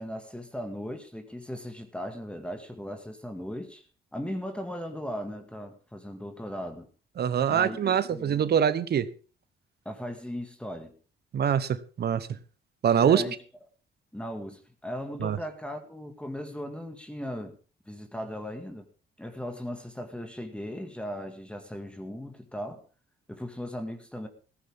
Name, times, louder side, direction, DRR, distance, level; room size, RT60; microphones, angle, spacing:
voice 1, 0.0-3.9 4.1-6.9 7.5-7.8 8.1-8.4 9.9-10.9 13.0-13.4 14.1-17.6 17.9-18.9 19.2-22.8 23.3-24.3, equal, 5° left, 2.0 m, -37 dB
voice 2, 7.2-9.1 11.3-12.3 12.8-13.2 15.2-15.4, right 8 dB, 55° right, 1.1 m, -24 dB
15.0 x 15.0 x 3.6 m
cardioid pair, 90°, 20 cm